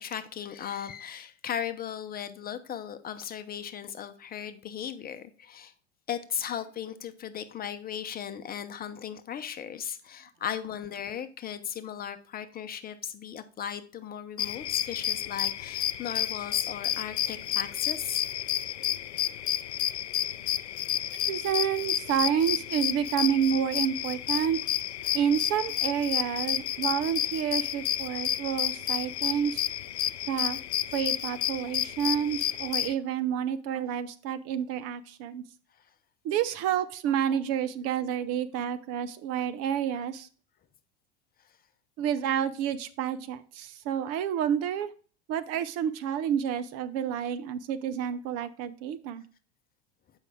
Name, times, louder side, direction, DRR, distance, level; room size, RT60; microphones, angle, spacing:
voice 1, 0.0-5.7 6.1-18.2 25.1-25.2, left 9 dB, 25° left, 0.8 m, -37 dB
sound 1, 14.4-32.9, left 12 dB, 80° left, 0.5 m, -31 dB
voice 2, 21.3-24.6 25.1-29.7 30.3-30.6 30.9-35.4 36.2-40.3 42.0-44.9 45.3-49.2, right 9 dB, 45° right, 0.7 m, -29 dB
8.0 x 5.4 x 3.7 m
hypercardioid pair, 85°, 33 cm